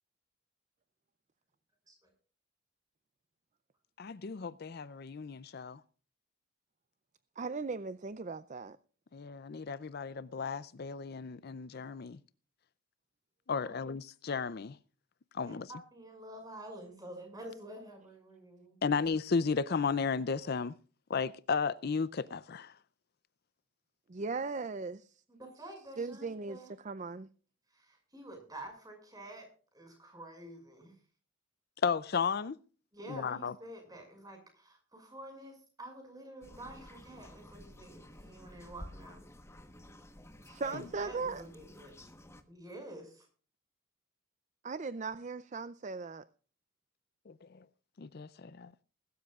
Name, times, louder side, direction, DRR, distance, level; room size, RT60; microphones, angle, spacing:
voice 1, 4.0-5.8 9.1-12.2 13.5-14.8 15.3-15.7 18.8-20.7 21.1-22.7 31.8-32.6 33.1-33.5 40.7-40.8 47.3-47.5 48.0-48.7, left 5 dB, 45° left, 0.5 m, -34 dB
voice 2, 7.4-8.8 24.1-25.1 26.0-27.3 40.4-41.4 44.6-46.2, right 4 dB, 35° right, 0.5 m, -38 dB
voice 3, 15.3-18.8 25.3-26.7 27.7-29.5 29.7-30.9 32.9-39.2 40.6-42.1 42.5-43.3, right 1 dB, 20° right, 6.0 m, -49 dB
sound 1, 36.4-42.4, left 1 dB, 15° left, 1.1 m, -52 dB
21.0 x 13.0 x 2.4 m
head